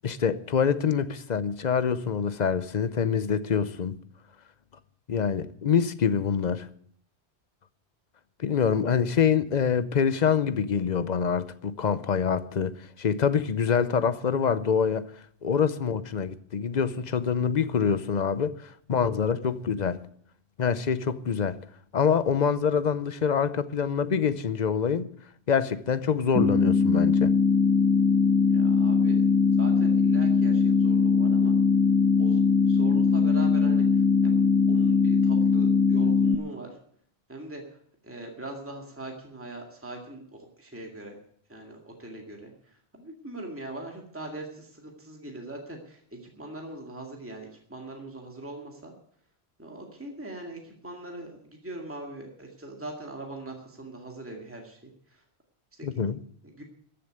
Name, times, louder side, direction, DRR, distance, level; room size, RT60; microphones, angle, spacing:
voice 1, 0.0-3.9 5.1-6.7 8.4-15.1 15.4-20.0 20.6-21.6 21.9-25.1 25.5-27.3 55.8-56.2, left 6 dB, 45° left, 0.8 m, -25 dB
sound 1, 26.3-36.3, left 5 dB, 5° left, 1.2 m, -21 dB
voice 2, 28.5-29.2 29.6-31.5 32.2-33.9 34.2-36.7 37.3-37.6 38.0-40.2 40.6-41.1 41.5-42.5 42.9-46.0 46.4-48.9 49.6-51.4 51.6-54.9 55.8-56.0 56.6-56.7, right 1 dB, 10° right, 2.2 m, -41 dB
15.0 x 7.0 x 9.1 m
omnidirectional pair, 1.1 m